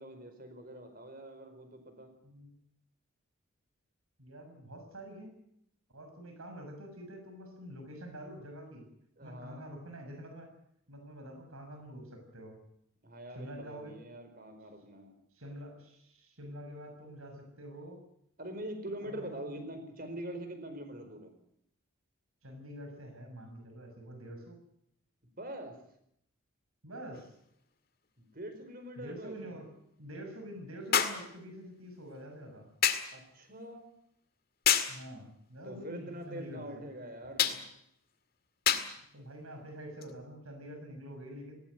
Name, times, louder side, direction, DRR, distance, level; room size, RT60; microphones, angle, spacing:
voice 1, 0.0-2.1 9.2-9.7 13.0-15.1 18.4-21.3 25.4-25.8 28.2-29.6 33.1-33.9 35.6-37.6, right 1 dB, 45° right, 7 dB, 4.8 m, -44 dB
voice 2, 4.2-5.3 5.9-8.8 9.2-10.5 10.9-12.6 13.3-14.0 15.3-18.0 19.0-19.5 22.4-24.6 26.8-27.3 29.0-29.7 30.0-32.7 34.9-36.8 39.1-41.6, equal, 80° right, 5 dB, 6.5 m, -46 dB
sound 1, 27.1-27.2 30.9-31.3 32.8-33.1 34.7-35.0 37.4-37.6 38.7-38.9 40.0-40.1, left 9 dB, 45° left, 2.0 m, -27 dB
19.0 x 18.0 x 9.4 m, 0.74 s
head